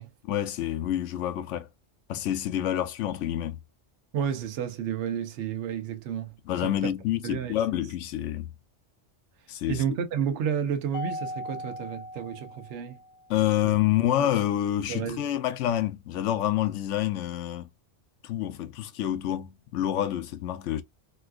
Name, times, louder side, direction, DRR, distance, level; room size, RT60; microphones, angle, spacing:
voice 1, 0.2-1.7 2.1-3.6 6.5-8.5 9.5-9.8 13.3-17.7 18.2-20.8, left 12 dB, 80° left, 0.9 m, -28 dB
voice 2, 4.1-6.3 6.6-6.9 7.2-7.6 9.7-13.0 14.2-14.4 14.9-15.2, right 8 dB, 70° right, 1.0 m, -31 dB
Mallet percussion, 10.9-13.4, left 1 dB, 55° left, 0.6 m, -38 dB
4.2 x 2.3 x 2.3 m
omnidirectional pair, 1.2 m